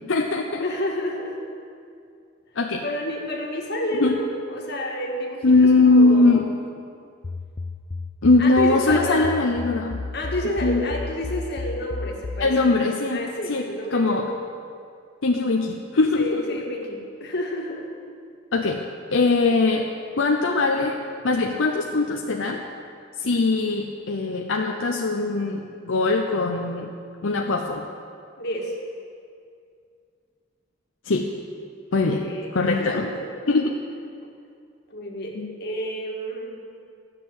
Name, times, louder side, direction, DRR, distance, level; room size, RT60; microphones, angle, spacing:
voice 1, 0.1-0.6 2.6-2.8 4.0-4.1 5.4-6.5 8.2-10.0 10.6-10.8 12.4-13.2 13.5-14.2 15.2-16.4 18.5-18.9 19.1-19.9 20.2-22.6 23.2-26.9 27.2-27.9 31.1-31.3 31.9-32.2 32.5-33.1 33.5-33.8 35.3-35.5, left 3 dB, 80° left, 1 dB, 0.7 m, -21 dB
voice 2, 0.6-1.4 2.8-6.5 8.4-9.3 10.1-12.8 13.1-14.4 16.2-17.9 28.4-28.8 32.1-33.3 34.9-36.6, equal, 55° left, -1 dB, 1.9 m, -30 dB
sound 1, 7.2-12.5, left 3 dB, 30° left, 0.3 m, -33 dB
13.0 x 6.8 x 8.9 m, 2.3 s
head